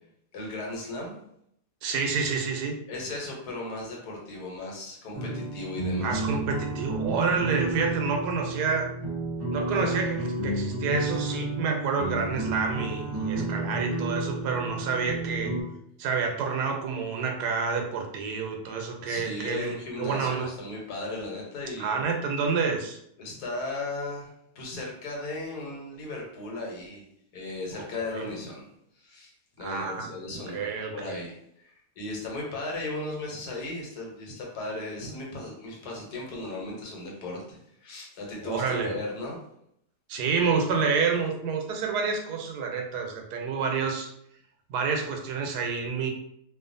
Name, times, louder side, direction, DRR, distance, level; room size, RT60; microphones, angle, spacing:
voice 1, 0.3-1.1 2.9-6.2 19.1-22.0 23.2-27.1 27.3-28.7 29.0-29.3 29.6-39.4, left 2 dB, 80° left, -1 dB, 1.3 m, -36 dB
voice 2, 1.8-2.7 6.0-8.9 9.5-15.5 16.0-20.5 21.8-23.0 28.1-28.2 29.6-30.1 30.5-31.2 38.4-39.0 40.1-44.1 44.7-46.1, right 5 dB, 90° right, 2 dB, 1.2 m, -28 dB
sound 1, 5.1-15.6, right 2 dB, 40° right, 1.0 m, -31 dB
2.6 x 2.4 x 2.5 m, 0.73 s
omnidirectional pair, 1.7 m